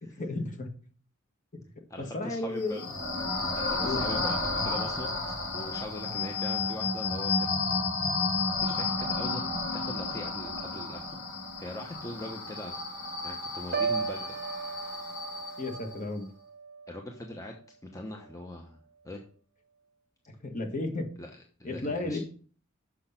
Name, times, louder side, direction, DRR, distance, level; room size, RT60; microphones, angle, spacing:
voice 1, 0.2-0.7 2.0-2.8 3.8-4.0 15.6-16.3 20.4-21.1 21.6-22.2, left 2 dB, 40° left, 4 dB, 1.5 m, -33 dB
voice 2, 1.9-2.8 3.5-5.1 5.5-7.5 8.6-9.4 9.7-11.2 11.6-12.7 13.2-14.4 16.9-19.2 21.2-22.2, left 1 dB, 15° left, 2 dB, 1.0 m, -41 dB
sound 1, 2.6-16.0, left 3 dB, 55° left, 3.0 m, -32 dB
Piano, 13.7-17.7 18.1-18.4, right 6 dB, 50° right, 0.6 m, -36 dB
6.6 x 6.4 x 5.8 m, 0.43 s
head